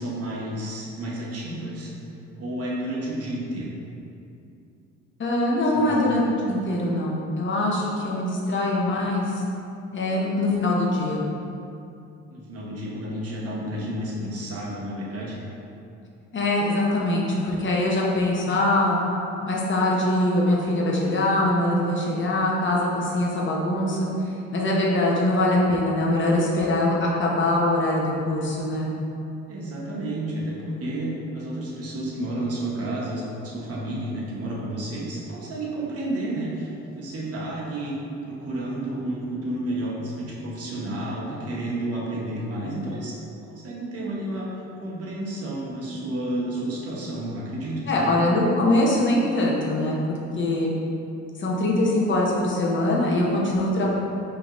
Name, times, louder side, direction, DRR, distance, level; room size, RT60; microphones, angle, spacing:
voice 1, 0.0-1.9 2.4-3.7 5.6-6.1 12.3-15.4 29.5-38.0 38.2-43.2 43.5-48.2 53.8-53.9, right 1 dB, 50° right, -5 dB, 1.0 m, -31 dB
voice 2, 5.2-9.2 9.9-11.3 16.3-19.0 19.5-24.0 24.2-28.9 47.9-50.7 51.4-53.9, left 1 dB, 40° left, -3 dB, 0.8 m, -23 dB
5.0 x 2.8 x 2.5 m, 2.7 s
cardioid pair, 90°, 30 cm